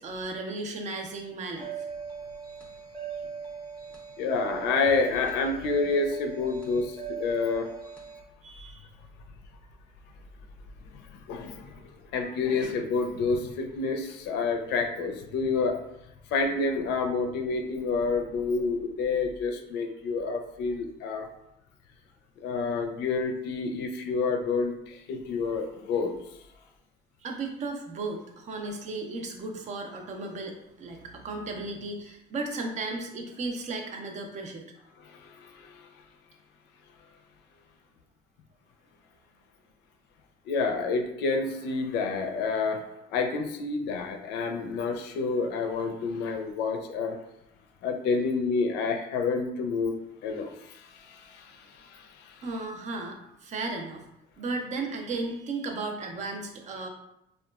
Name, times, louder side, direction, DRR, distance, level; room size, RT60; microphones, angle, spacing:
voice 1, 0.0-1.7 8.4-8.9 27.2-34.6 52.4-54.1 54.4-56.9, right 3 dB, 45° right, 3 dB, 0.5 m, -35 dB
sound 1, 1.6-8.2, right 6 dB, 10° left, 0.5 m, -39 dB
voice 2, 4.2-7.7 11.1-11.8 12.1-15.8 16.3-21.3 22.4-26.2 35.0-35.9 40.5-42.9 43.1-47.2 47.8-49.9 50.2-52.4, left 4 dB, 85° left, 4 dB, 0.4 m, -29 dB
2.8 x 2.2 x 2.3 m, 0.83 s
cardioid pair, 110°, 17 cm